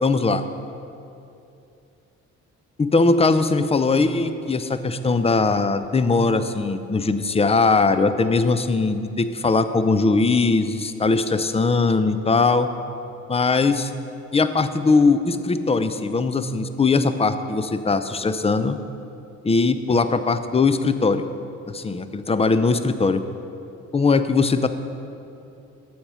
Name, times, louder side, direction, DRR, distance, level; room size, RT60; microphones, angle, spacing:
voice 1, 0.0-0.4 2.8-12.7 13.3-13.9 14.3-18.8 19.4-21.3 21.7-23.2 23.9-24.7, left 4 dB, 15° left, 11 dB, 0.5 m, -20 dB
8.5 x 7.9 x 5.6 m, 2.7 s
figure-of-eight pair, 40°, 38 cm